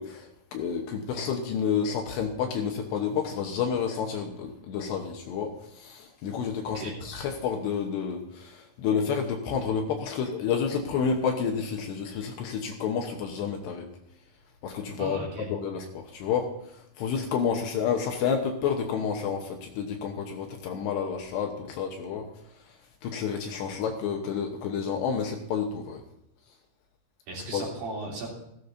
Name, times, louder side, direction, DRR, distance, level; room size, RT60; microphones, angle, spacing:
voice 1, 0.0-13.9 14.6-22.3 23.0-26.0 27.5-27.6, left 6 dB, 75° left, 2 dB, 2.9 m, -30 dB
voice 2, 15.0-15.5 27.3-28.3, right 2 dB, 50° right, -4 dB, 4.3 m, -36 dB
15.5 x 14.5 x 2.7 m, 0.79 s
omnidirectional pair, 5.5 m